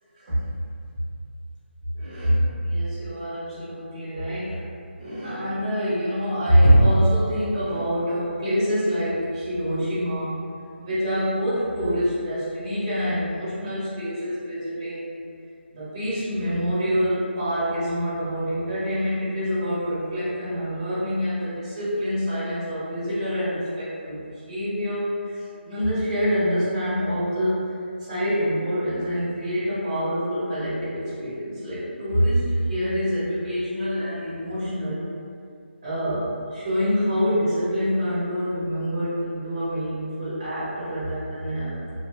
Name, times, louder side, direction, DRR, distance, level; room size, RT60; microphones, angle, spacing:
voice 1, 1.9-4.6 5.0-10.4 10.8-15.2 15.7-24.2 24.5-27.7 28.1-35.0 35.8-41.9, equal, 25° right, -12 dB, 1.0 m, -25 dB
2.7 x 2.1 x 3.2 m, 2.4 s
hypercardioid pair, 170°, 7 cm